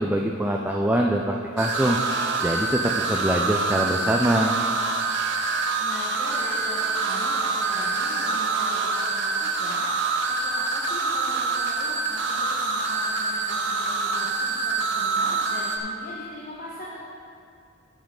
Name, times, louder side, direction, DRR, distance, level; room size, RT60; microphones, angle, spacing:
voice 1, 0.0-2.0 2.4-4.6, right 1 dB, 10° right, 0 dB, 0.4 m, -24 dB
sound 1, 1.6-15.8, right 4 dB, 60° right, 0.8 m, -26 dB
voice 2, 5.4-17.0, left 1 dB, 40° left, -6 dB, 1.2 m, -40 dB
sound 2, 6.4-11.0, left 3 dB, 80° left, 0.8 m, -41 dB
12.0 x 7.1 x 3.8 m, 2.4 s
head